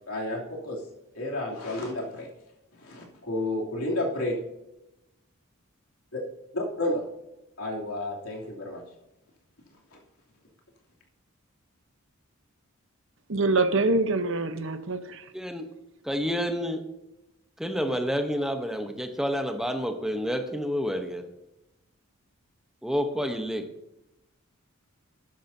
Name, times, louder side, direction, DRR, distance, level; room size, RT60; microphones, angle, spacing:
voice 1, 0.1-0.8 1.2-2.3 2.8-4.3 6.1-6.2 6.5-7.0 7.6-8.8 9.9-10.0, left 1 dB, 85° left, -2 dB, 2.9 m, -31 dB
voice 2, 13.3-15.3, right 2 dB, 60° right, 9 dB, 0.9 m, -25 dB
voice 3, 15.3-15.7 16.0-16.8 17.6-21.3 22.8-23.6, equal, ahead, 5 dB, 0.9 m, -29 dB
13.0 x 10.5 x 2.7 m, 0.93 s
head